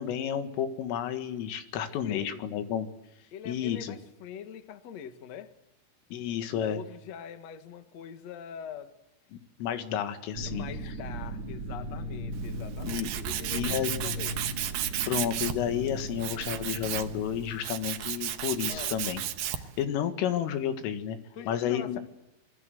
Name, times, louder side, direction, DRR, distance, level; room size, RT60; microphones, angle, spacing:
voice 1, 0.0-2.9 3.5-4.0 6.1-6.8 9.3-10.6 12.8-14.1 15.0-19.2 19.6-21.2 21.5-22.0, left 9 dB, 85° left, 4.4 m, -31 dB
voice 2, 2.0-2.5 3.3-5.5 6.5-9.0 10.5-14.4 18.7-18.9 21.3-22.0, left 8 dB, 65° left, 1.6 m, -43 dB
sound 1, 10.3-17.6, right 1 dB, 45° right, 2.6 m, -37 dB
Tools, 12.3-19.8, right 11 dB, 70° right, 2.6 m, -34 dB
27.0 x 23.0 x 7.8 m
omnidirectional pair, 5.7 m